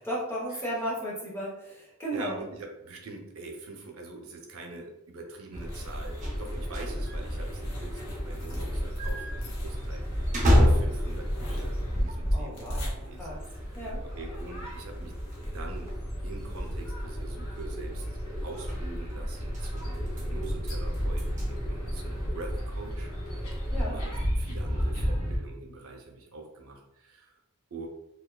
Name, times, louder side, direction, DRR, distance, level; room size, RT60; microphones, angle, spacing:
voice 1, 0.0-2.4 12.3-13.4 13.8-14.0 23.7-24.0, equal, 10° left, -6 dB, 0.7 m, -34 dB
voice 2, 2.1-13.8 14.1-15.1 15.4-15.9 16.2-18.1 18.4-23.4 23.9-27.3 27.7-27.9, right 3 dB, 75° right, 1 dB, 0.6 m, -44 dB
sound 1, 5.5-25.4, equal, 90° left, 0.8 m, -33 dB
sound 2, 6.2-12.7 13.0-13.1 13.6-13.7 14.4-14.5 14.7-14.8 15.1-15.4 15.6-16.8 17.4-17.6 18.6-18.9 19.4-21.5, left 1 dB, 35° right, 0.6 m, -30 dB
3.2 x 2.2 x 2.2 m, 0.89 s
head